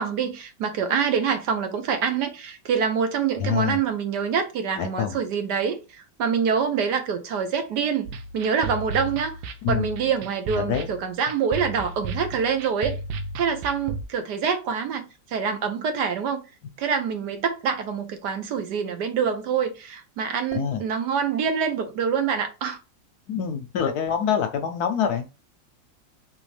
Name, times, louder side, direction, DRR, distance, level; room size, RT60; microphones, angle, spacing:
voice 1, 0.0-9.4 9.7-13.0 13.4-16.4 16.8-22.8, right 6 dB, 65° right, 1.3 m, -26 dB
voice 2, 3.4-3.8 4.8-5.2 9.6-9.9 10.6-10.9 20.5-20.8 23.3-25.2, left 8 dB, 70° left, 1.0 m, -25 dB
sound 1, 8.1-14.0, right 3 dB, 90° right, 1.4 m, -34 dB
4.0 x 3.5 x 3.2 m
omnidirectional pair, 2.0 m